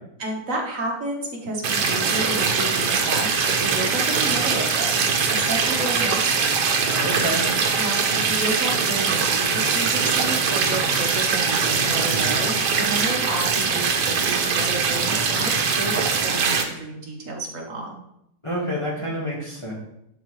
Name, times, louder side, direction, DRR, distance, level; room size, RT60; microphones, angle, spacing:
voice 1, 0.2-6.5 7.7-17.9, right 2 dB, 55° right, -1 dB, 1.8 m, -31 dB
sound 1, 1.6-16.6, right 5 dB, 85° right, 1.5 m, -22 dB
voice 2, 6.9-7.4 18.4-19.7, equal, 20° left, -5 dB, 1.8 m, -28 dB
11.0 x 4.6 x 3.2 m, 0.78 s
omnidirectional pair, 1.7 m